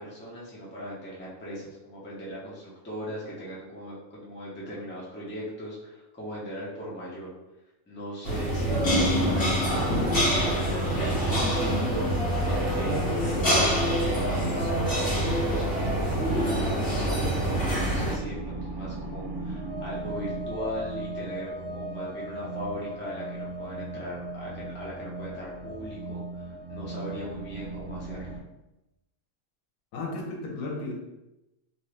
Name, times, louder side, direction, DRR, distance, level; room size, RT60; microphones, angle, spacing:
voice 1, 0.0-7.3 7.9-12.1 12.7-28.4, equal, 10° left, -6 dB, 0.5 m, -39 dB
sound 1, 8.2-18.2, equal, 45° left, 1.4 m, -25 dB
sound 2, 17.2-28.4, right 2 dB, 50° right, 0.8 m, -37 dB
voice 2, 29.9-30.9, left 2 dB, 75° left, 0 dB, 1.1 m, -34 dB
2.9 x 2.6 x 3.2 m, 0.96 s
omnidirectional pair, 1.4 m